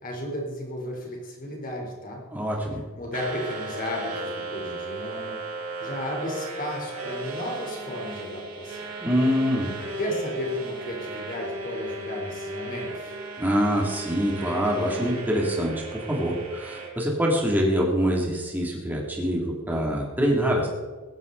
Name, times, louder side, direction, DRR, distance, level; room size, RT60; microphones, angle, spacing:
voice 1, 0.0-2.3 2.9-5.4 5.8-8.9 10.0-13.2, equal, 40° left, 0 dB, 4.0 m, -34 dB
voice 2, 2.3-2.8 9.0-9.7 13.4-20.7, equal, 10° right, -2 dB, 2.9 m, -25 dB
sound 1, 3.1-16.9, right 2 dB, 80° right, 4.4 m, -35 dB
17.5 x 12.5 x 4.1 m, 1.4 s
head